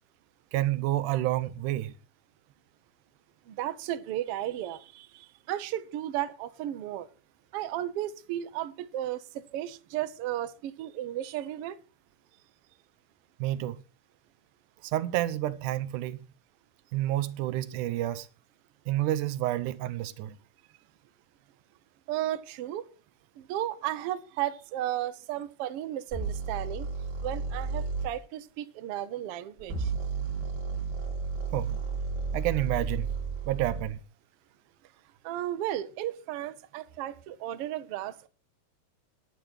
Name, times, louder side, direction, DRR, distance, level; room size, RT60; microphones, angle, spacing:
voice 1, 0.5-1.9 13.4-13.8 14.8-16.2 16.9-18.3 18.9-20.4 31.5-31.8 32.3-33.1 33.5-34.0, right 14 dB, 85° right, 2.3 m, -29 dB
voice 2, 3.5-7.1 7.5-11.8 22.1-22.9 23.4-26.9 27.2-29.9 35.2-38.3, right 12 dB, 65° right, 1.6 m, -34 dB
sound 1, 26.1-28.1 29.6-33.9, right 4 dB, 35° right, 3.4 m, -33 dB
10.5 x 9.9 x 6.1 m
omnidirectional pair, 3.5 m